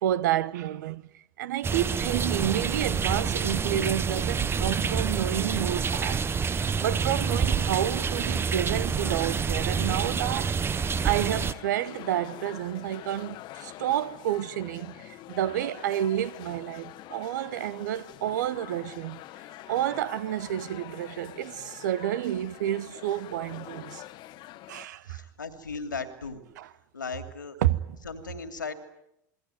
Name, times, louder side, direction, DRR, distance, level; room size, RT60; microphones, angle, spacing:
voice 1, 0.0-6.3 6.5-10.6 11.0-19.2 19.7-24.0 24.7-25.2 26.6-26.7 27.6-27.8, right 12 dB, 70° right, 1.1 m, -30 dB
sound 1, 1.6-11.5, right 6 dB, 25° right, 1.0 m, -27 dB
sound 2, 10.9-24.9, left 15 dB, 50° left, 1.3 m, -45 dB
voice 2, 25.1-26.4 26.9-27.6 28.0-28.7, left 4 dB, 90° left, 2.7 m, -36 dB
27.5 x 21.5 x 9.5 m
hypercardioid pair, 80°, 10 cm